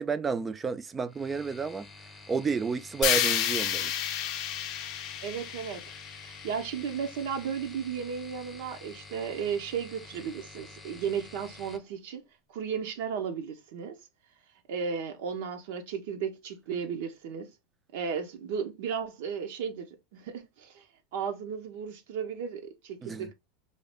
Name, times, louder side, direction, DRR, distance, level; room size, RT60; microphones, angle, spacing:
voice 1, 0.0-1.9 2.3-3.9 23.0-23.3, right 5 dB, 20° right, 0.3 m, -31 dB
sound 1, 1.1-11.8, left 3 dB, 15° left, 0.6 m, -49 dB
sound 2, 3.0-7.1, left 10 dB, 55° left, 0.5 m, -30 dB
voice 2, 5.2-5.8 6.2-12.2 12.5-14.0 14.7-17.5 17.9-20.8 21.1-23.3, right 7 dB, 75° right, 0.6 m, -34 dB
2.7 x 2.3 x 3.3 m
supercardioid pair, 120°, 0 cm